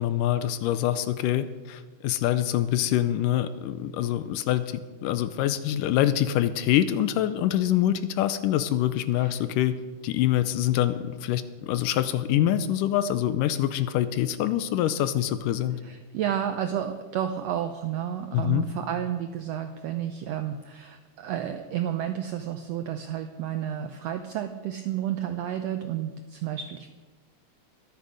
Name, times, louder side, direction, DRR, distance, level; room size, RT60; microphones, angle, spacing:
voice 1, 0.0-9.8 10.0-15.8 18.3-18.7, left 12 dB, 85° left, 12 dB, 2.2 m, -25 dB
voice 2, 15.8-26.9, right 10 dB, 85° right, 7 dB, 1.4 m, -31 dB
22.5 x 8.2 x 5.2 m, 1.3 s
omnidirectional pair, 3.8 m